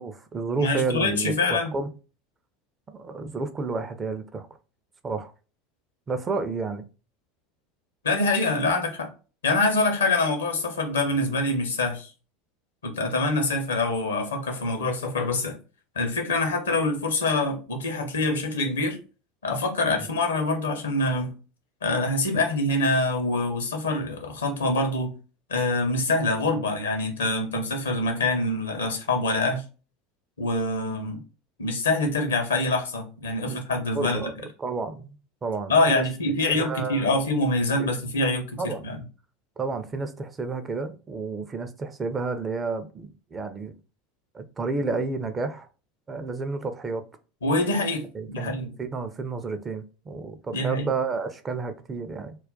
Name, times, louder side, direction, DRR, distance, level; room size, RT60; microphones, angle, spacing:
voice 1, 0.0-1.9 2.9-4.5 5.0-5.3 6.1-6.8 33.5-33.6 33.9-34.3 34.6-36.0 36.5-37.2 37.8-37.9 38.6-38.8 39.6-43.7 44.3-45.7 46.1-47.0 48.1-48.5 48.8-52.4, right 4 dB, 25° right, 0.4 m, -31 dB
voice 2, 0.6-1.7 8.0-9.1 9.4-12.1 12.8-15.6 15.9-19.0 19.4-21.3 21.8-25.1 25.5-29.6 30.4-31.2 31.6-34.3 35.7-39.0 47.4-48.7 50.5-50.8, left 2 dB, 75° left, 0.7 m, -25 dB
2.4 x 2.1 x 3.7 m
figure-of-eight pair, 75°, 0 cm